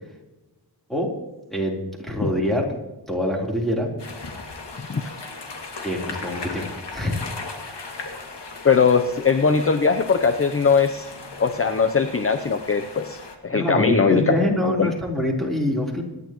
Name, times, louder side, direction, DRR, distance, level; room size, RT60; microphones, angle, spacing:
voice 1, 1.5-2.7 3.1-3.9 5.8-7.2 13.5-16.0, left 1 dB, ahead, -2 dB, 3.7 m, -25 dB
sound 1, 4.0-13.3, left 3 dB, 75° left, 2.5 m, -37 dB
voice 2, 8.6-11.1 11.4-14.9, left 5 dB, 35° left, 7 dB, 0.7 m, -20 dB
26.0 x 11.0 x 3.1 m, 1.1 s
wide cardioid pair, 130°, 41 cm